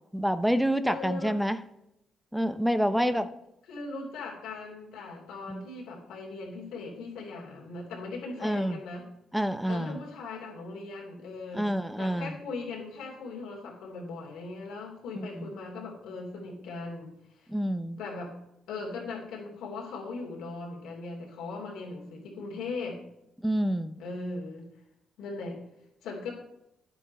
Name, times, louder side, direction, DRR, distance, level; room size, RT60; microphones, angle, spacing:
voice 1, 0.1-1.6 2.3-3.3 5.5-5.6 8.4-8.8 9.3-10.0 11.5-12.4 15.2-15.5 17.5-18.0 23.4-24.0, equal, ahead, 11 dB, 0.6 m, -27 dB
voice 2, 0.9-1.4 2.9-3.2 3.7-9.1 9.7-11.7 12.0-17.5 18.0-18.4 18.7-23.0 24.0-24.7 25.2-25.6 26.0-26.3, left 3 dB, 90° left, -1 dB, 3.1 m, -39 dB
9.9 x 7.9 x 4.1 m, 0.85 s
cardioid pair, 85°, 0 cm